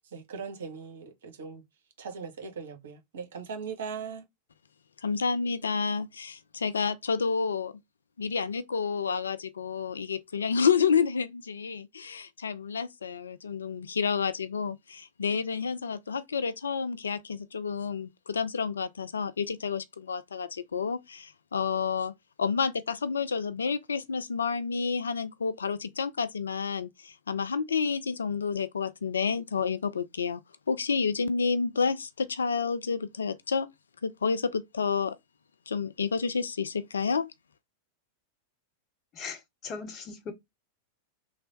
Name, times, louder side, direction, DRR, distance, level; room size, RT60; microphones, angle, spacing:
voice 1, 0.1-1.6 2.0-4.3, right 6 dB, 60° right, 0.8 m, -39 dB
voice 2, 5.0-7.7 8.2-22.1 22.4-30.4 30.7-33.7 34.0-35.2 35.7-37.3, left 5 dB, 70° left, 0.3 m, -29 dB
voice 3, 39.1-40.3, left 5 dB, 30° left, 0.9 m, -39 dB
3.2 x 2.1 x 3.8 m
figure-of-eight pair, 90°, 0 cm